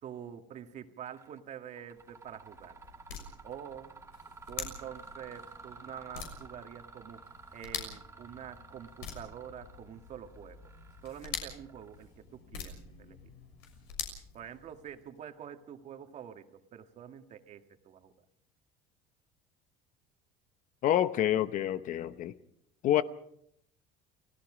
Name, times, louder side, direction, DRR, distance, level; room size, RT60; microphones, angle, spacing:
voice 1, 0.0-2.8 3.4-3.9 4.5-7.2 7.5-10.7 11.0-13.3 14.3-18.1, right 9 dB, 45° right, 1.9 m, -46 dB
Mechanisms, 1.1-1.4 1.8-12.3, right 4 dB, 15° right, 1.5 m, -52 dB
sound 1, 1.8-15.1, left 6 dB, 75° left, 6.5 m, -46 dB
voice 2, 20.8-22.3 22.8-23.0, left 12 dB, 50° left, 0.9 m, -27 dB
29.5 x 18.0 x 5.1 m
cardioid pair, 140°, 17 cm